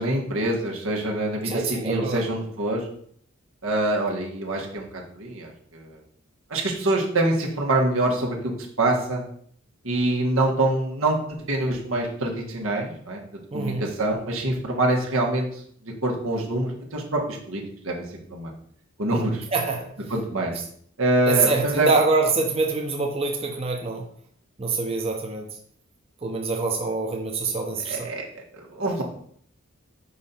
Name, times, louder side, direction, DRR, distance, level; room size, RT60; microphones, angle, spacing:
voice 1, 0.0-2.9 3.6-6.0 6.5-8.5 8.8-9.2 9.8-13.2 13.5-18.5 19.0-19.4 20.1-20.5 21.0-21.9 27.8-29.0, right 2 dB, 85° right, 0 dB, 1.6 m, -25 dB
voice 2, 1.5-2.2 13.5-13.9 19.5-19.9 21.3-24.0 24.6-25.4 26.2-28.1, right 3 dB, 30° right, 1 dB, 0.8 m, -25 dB
5.5 x 5.3 x 4.4 m, 0.62 s
head